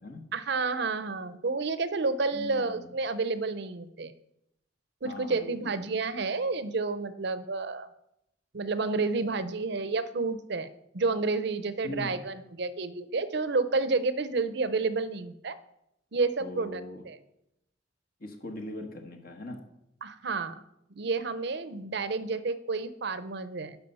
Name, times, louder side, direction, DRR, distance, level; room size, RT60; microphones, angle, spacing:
voice 1, 0.3-4.1 5.0-7.9 8.5-10.7 10.9-15.6 16.1-16.8 17.1-17.2 20.0-20.6 21.0-23.8, right 3 dB, 65° right, 13 dB, 0.7 m, -30 dB
voice 2, 2.3-2.9 5.0-5.8 11.8-12.2 16.4-17.0 18.2-19.6, left 2 dB, 50° left, 3 dB, 1.3 m, -40 dB
11.5 x 5.8 x 5.5 m, 0.81 s
head